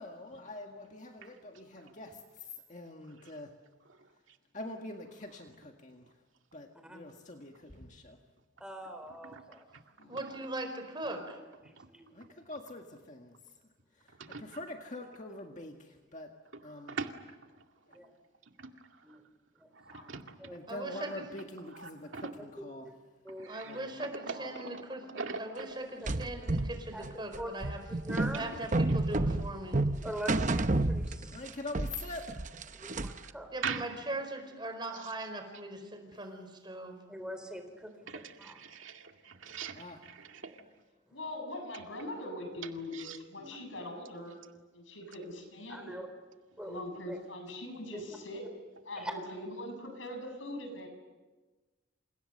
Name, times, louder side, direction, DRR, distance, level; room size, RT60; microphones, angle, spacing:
voice 1, 0.0-3.5 4.5-6.1 6.5-8.2 12.1-13.4 14.0-16.3 16.6-17.0 17.9-18.0 20.5-22.9 23.6-23.9 31.3-32.3 36.1-36.2 39.7-40.0, left 2 dB, 40° left, 3 dB, 1.8 m, -45 dB
voice 2, 8.6-9.6 11.9-12.4 17.9-18.1 19.0-19.2 19.6-19.7 20.4-20.6 22.4-22.7 23.2-23.5 26.0-26.1 26.4-26.6 26.9-27.1 27.4-27.5 28.1-28.5 30.0-31.4 32.7-33.5 37.1-38.6 39.4-39.5 43.4-43.8 45.7-46.1 46.6-46.8 47.1-47.2 47.9-48.0 49.0-49.1, right 1 dB, 5° right, 6 dB, 3.9 m, -43 dB
voice 3, 10.1-11.4 20.7-21.3 23.5-27.8 28.3-29.8 33.5-37.0, right 1 dB, 25° right, 5 dB, 4.7 m, -40 dB
voice 4, 19.7-20.5 21.1-21.2 21.7-22.3 23.4-23.8 24.3-24.8 25.1-25.7 28.3-28.5 28.9-29.0 33.6-33.9 38.1-40.6 42.9-43.2, right 5 dB, 80° right, 4 dB, 2.2 m, -41 dB
sound 1, 26.1-31.5 31.7-33.3, right 2 dB, 40° right, 0.8 m, -30 dB
voice 5, 41.1-44.4 44.7-46.0 46.6-48.5 48.8-50.9, left 1 dB, 75° left, 5 dB, 7.3 m, -42 dB
29.0 x 28.0 x 6.7 m, 1.3 s
head